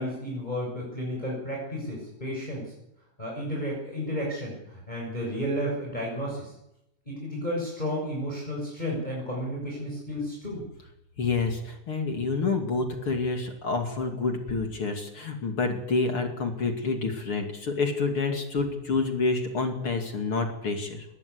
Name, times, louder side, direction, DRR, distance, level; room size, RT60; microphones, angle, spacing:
voice 1, 0.0-2.7 3.2-6.5 7.0-10.6, equal, 15° left, -3 dB, 6.7 m, -32 dB
voice 2, 11.2-21.1, left 4 dB, 45° left, 4 dB, 3.2 m, -28 dB
21.0 x 17.5 x 8.5 m, 0.83 s
omnidirectional pair, 3.6 m